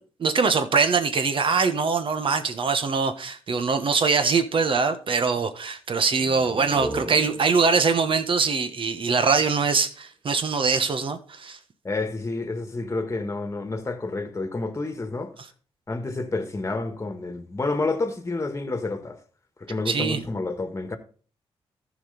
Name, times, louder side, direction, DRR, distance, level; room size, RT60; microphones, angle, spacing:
voice 1, 0.2-11.6 19.9-20.2, right 5 dB, 55° right, 1.2 m, -23 dB
sound 1, 6.1-9.6, right 1 dB, 35° right, 1.8 m, -38 dB
voice 2, 11.8-15.3 15.9-19.2 19.6-21.0, left 3 dB, 25° left, 1.5 m, -29 dB
14.0 x 5.1 x 3.9 m
cardioid pair, 65°, 10 cm